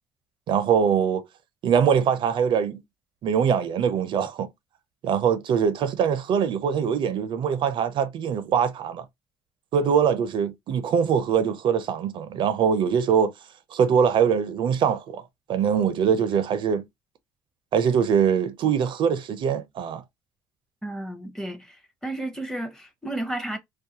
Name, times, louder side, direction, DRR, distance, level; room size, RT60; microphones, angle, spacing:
voice 1, 0.5-1.2 1.6-2.8 3.2-4.5 5.0-9.0 9.7-13.3 13.7-15.2 15.5-16.8 17.7-20.0, right 7 dB, 60° right, 0.4 m, -23 dB
voice 2, 20.8-21.8 22.0-23.6, right 1 dB, 5° left, 0.6 m, -32 dB
2.4 x 2.2 x 2.7 m
cardioid pair, 90°, 10 cm